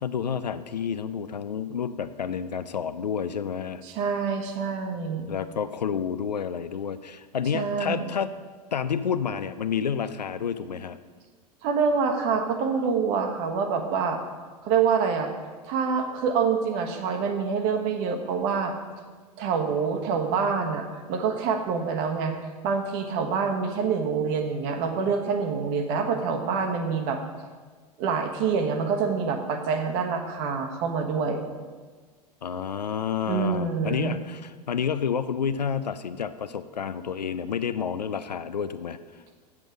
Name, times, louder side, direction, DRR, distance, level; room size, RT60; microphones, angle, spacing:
voice 1, 0.0-3.8 5.3-8.3 8.7-11.0 32.4-39.2, left 7 dB, 75° left, 12 dB, 0.5 m, -30 dB
voice 2, 3.8-5.3 7.5-8.1 11.6-14.2 14.6-15.3 15.6-18.7 19.4-22.3 22.6-27.2 28.0-31.4 33.3-34.2, right 5 dB, 45° right, 5 dB, 1.3 m, -26 dB
7.6 x 7.5 x 6.2 m, 1.4 s
figure-of-eight pair, 85°, 21 cm